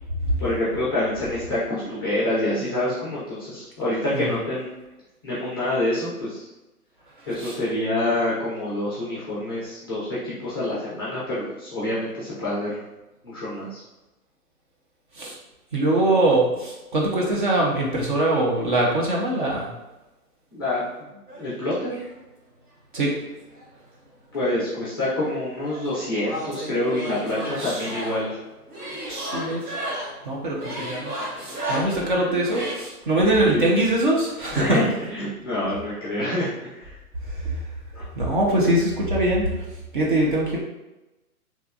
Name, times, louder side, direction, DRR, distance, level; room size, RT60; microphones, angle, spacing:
voice 1, 0.4-4.7 5.2-6.5 7.3-12.8 13.2-13.8 20.5-20.8 21.4-22.0 24.3-28.4 33.5-33.7 34.5-37.0 37.9-38.1, left 1 dB, 15° left, -8 dB, 0.5 m, -27 dB
voice 2, 15.7-19.7 22.9-23.1 27.6-27.8 29.0-29.7 30.2-31.1 31.4-34.8 38.2-39.5 39.9-40.6, right 1 dB, 35° right, -3 dB, 0.6 m, -22 dB
sound 1, 21.3-22.1 22.9-24.1 24.4-32.7, right 1 dB, 85° right, 1.0 m, -34 dB
3.3 x 3.0 x 2.3 m, 1.0 s
figure-of-eight pair, 125°, 45 cm